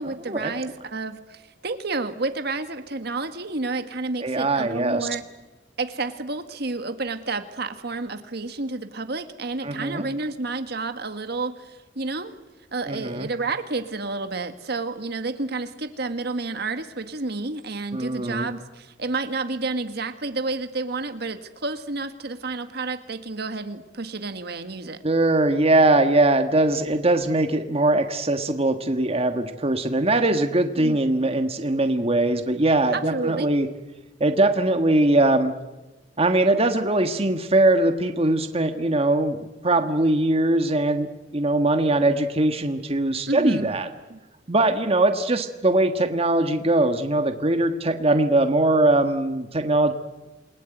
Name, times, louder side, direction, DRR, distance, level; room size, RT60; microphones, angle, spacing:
voice 1, 0.0-5.2 5.8-12.4 12.7-25.0 30.8-31.0 32.9-33.5 43.3-43.7 44.1-44.2, right 3 dB, 60° right, 8 dB, 1.7 m, -30 dB
voice 2, 4.2-5.1 9.6-10.1 12.9-13.3 17.9-18.5 25.0-33.7 34.2-35.5 36.2-41.1 41.3-43.9 44.5-49.9, right 2 dB, 35° right, 7 dB, 1.6 m, -21 dB
28.5 x 20.5 x 9.2 m, 1.1 s
head